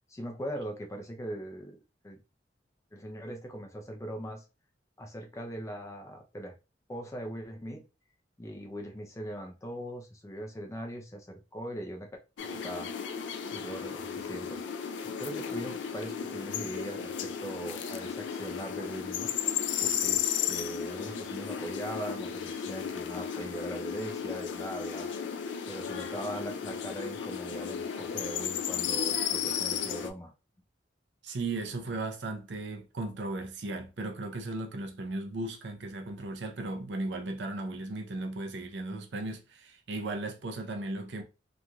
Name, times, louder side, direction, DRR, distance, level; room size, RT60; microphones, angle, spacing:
voice 1, 0.1-2.2 2.9-4.4 5.0-6.5 6.9-7.8 8.4-12.1 12.4-12.9 13.5-14.6 15.0-19.3 19.8-25.1 25.7-30.3, equal, 15° left, 0.5 m, -40 dB
sound 1, 12.4-30.1, left 8 dB, 75° left, 0.4 m, -34 dB
voice 2, 31.2-41.2, right 2 dB, 70° right, 0.6 m, -36 dB
3.0 x 2.5 x 2.2 m
head